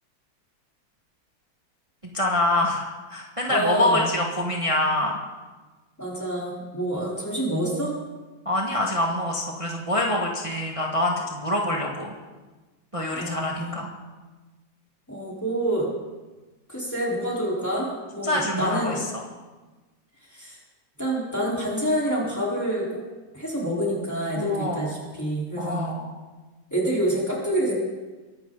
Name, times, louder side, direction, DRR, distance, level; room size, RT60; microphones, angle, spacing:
voice 1, 2.1-5.2 8.4-12.1 12.9-13.9 18.2-19.2 24.3-24.9 25.6-26.1, left 1 dB, 20° right, -1 dB, 1.5 m, -25 dB
voice 2, 3.5-4.0 6.0-7.9 13.1-13.8 15.1-15.9 16.7-19.0 20.3-20.6 21.0-23.0 23.3-25.8 26.7-27.7, right 1 dB, 10° left, -5 dB, 4.2 m, -27 dB
24.0 x 11.5 x 4.0 m, 1.2 s
omnidirectional pair, 2.0 m